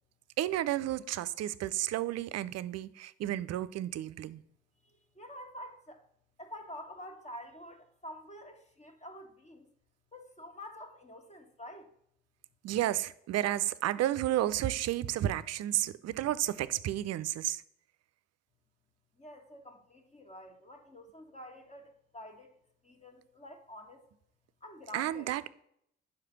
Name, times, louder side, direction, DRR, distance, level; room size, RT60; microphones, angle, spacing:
voice 1, 0.4-4.4 12.6-17.6 24.9-25.5, right 13 dB, 60° right, 0.5 m, -32 dB
voice 2, 4.8-6.0 6.4-9.6 10.1-11.9 19.1-22.5 22.8-24.0 24.6-25.3, left 1 dB, 25° left, 1.6 m, -48 dB
5.8 x 4.9 x 5.7 m
hypercardioid pair, 45°, 30 cm